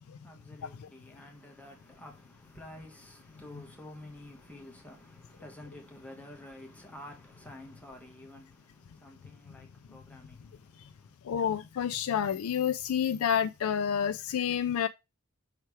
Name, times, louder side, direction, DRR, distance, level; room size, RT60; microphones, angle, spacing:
voice 1, 0.0-11.2, left 1 dB, 5° left, 1.2 m, -50 dB
voice 2, 11.3-14.9, left 8 dB, 80° left, 0.4 m, -29 dB
5.8 x 4.4 x 4.7 m
head